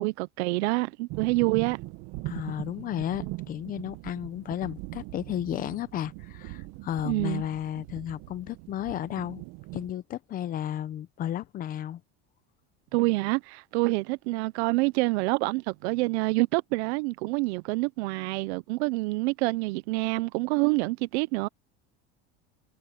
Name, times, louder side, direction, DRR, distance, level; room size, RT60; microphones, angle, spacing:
voice 1, 0.0-1.8 7.0-7.4 12.9-21.5, right 23 dB, 85° right, 0.6 m, -27 dB
sound 1, 1.1-9.9, right 20 dB, 50° right, 0.9 m, -41 dB
voice 2, 2.3-9.4 9.7-12.0, left 11 dB, 25° left, 0.7 m, -33 dB
cardioid pair, 170°, 32 cm